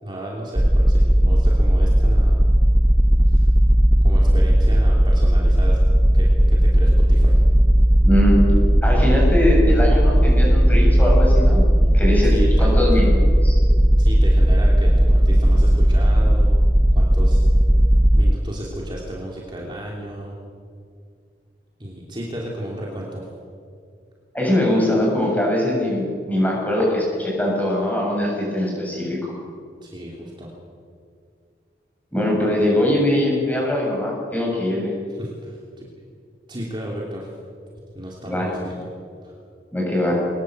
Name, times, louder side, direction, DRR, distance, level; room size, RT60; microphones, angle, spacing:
voice 1, 0.0-2.4 3.3-3.5 4.0-5.8 6.1-7.4 12.2-13.0 14.0-16.6 16.9-17.4 18.1-20.4 21.8-23.3 29.8-30.5 35.1-35.9 36.5-37.3 37.9-38.9 39.2-39.3, right 1 dB, 25° right, -3 dB, 3.1 m, -33 dB
sound 1, 0.6-18.3, equal, 10° right, 0.5 m, -15 dB
voice 2, 8.0-8.4 8.8-11.6 11.9-12.3 12.6-13.6 24.3-29.4 32.1-34.9 38.3-38.5 39.7-40.2, left 1 dB, 10° left, -2 dB, 7.4 m, -21 dB
22.5 x 20.5 x 7.9 m, 2.2 s
head